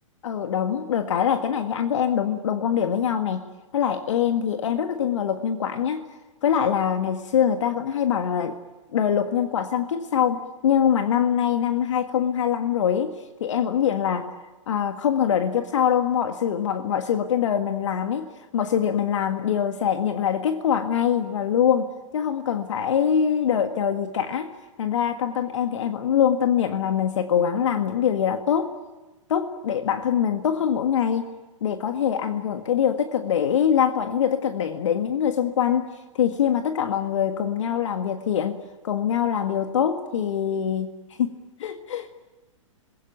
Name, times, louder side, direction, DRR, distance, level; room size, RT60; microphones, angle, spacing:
voice 1, 0.2-3.4 3.7-6.0 6.4-8.5 8.9-13.1 13.4-14.3 14.7-18.3 18.5-21.9 22.1-24.5 24.8-28.7 29.3-31.3 31.6-35.9 36.1-40.9 41.2-41.3 41.6-42.1, left 8 dB, 65° left, 7 dB, 1.7 m, -23 dB
28.5 x 21.0 x 9.3 m, 1.1 s
hypercardioid pair, 115°, 17 cm